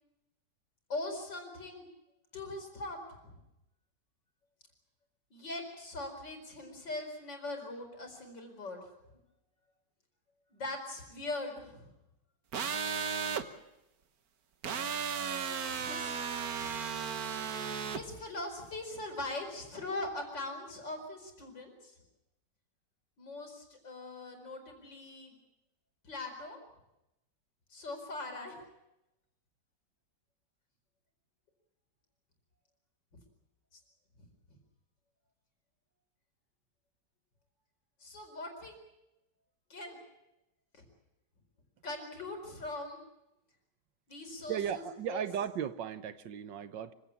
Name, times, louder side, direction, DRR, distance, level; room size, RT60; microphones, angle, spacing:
voice 1, 0.9-1.9 2.3-3.4 5.3-8.9 10.5-11.9 15.7-16.2 16.6-16.7 17.9-22.0 23.2-25.4 26.0-26.6 27.7-28.6 38.0-38.8 39.7-40.0 40.7-40.8 41.8-43.0 44.1-45.2, left 2 dB, 85° left, 4 dB, 5.4 m, -41 dB
sound 1, 12.5-13.4 14.6-18.0, right 6 dB, 55° right, 1.6 m, -35 dB
voice 2, 44.5-46.9, right 9 dB, 80° right, 13 dB, 1.7 m, -36 dB
25.5 x 16.5 x 8.5 m, 0.90 s
omnidirectional pair, 1.9 m